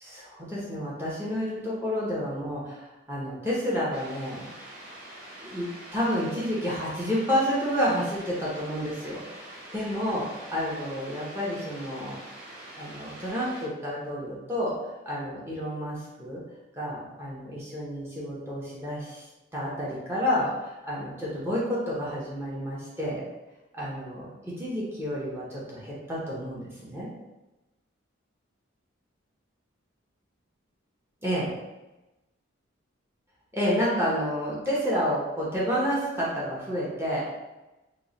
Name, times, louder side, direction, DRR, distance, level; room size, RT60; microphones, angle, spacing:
voice 1, 0.0-4.5 5.4-12.2 12.7-14.8 15.1-16.4 16.8-19.2 19.5-23.3 23.7-27.1 31.2-31.5 33.5-37.3, equal, 10° right, -7 dB, 0.7 m, -30 dB
sound 1, 3.9-13.7, right 1 dB, 45° right, 0.9 m, -45 dB
3.0 x 2.1 x 3.8 m, 1.0 s
head